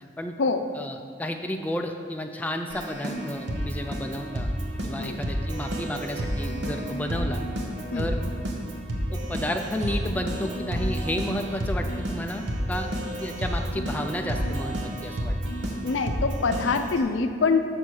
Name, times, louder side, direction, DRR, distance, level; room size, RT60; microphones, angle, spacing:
voice 1, 0.8-4.5 4.8-7.4 7.9-8.2 9.1-12.9 13.2-15.3, left 1 dB, 10° left, 3 dB, 0.3 m, -32 dB
Keyboard (musical), 2.7-17.0, equal, 80° right, 0.9 m, -30 dB
voice 2, 15.8-17.7, left 4 dB, 85° left, 8 dB, 0.5 m, -25 dB
6.8 x 4.4 x 6.3 m, 2.2 s
head